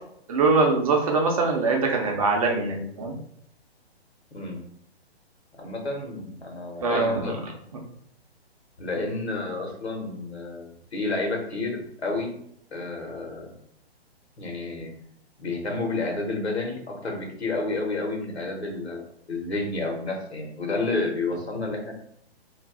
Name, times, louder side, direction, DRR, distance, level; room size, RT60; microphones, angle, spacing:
voice 1, 0.3-3.2 6.8-7.4 9.0-9.1, right 3 dB, 35° right, 0 dB, 0.6 m, -23 dB
voice 2, 5.6-7.4 8.8-12.3 12.7-13.5 14.4-14.9 15.4-21.9, left 3 dB, 80° left, 1 dB, 1.0 m, -30 dB
2.5 x 2.3 x 3.5 m, 0.70 s
figure-of-eight pair, 125°, 32 cm